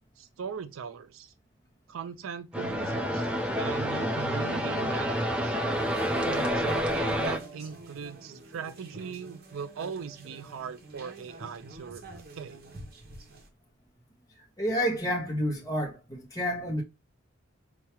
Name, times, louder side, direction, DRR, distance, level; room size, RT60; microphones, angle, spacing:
voice 1, 0.2-1.3 1.9-5.6 6.2-12.6, right 6 dB, 80° right, 0.4 m, -40 dB
sound 1, 2.5-7.4, equal, 5° right, 0.4 m, -28 dB
sound 2, 5.7-13.5, right 2 dB, 50° right, 0.8 m, -46 dB
voice 2, 14.6-16.8, equal, 15° left, 0.8 m, -29 dB
4.5 x 2.3 x 2.9 m
head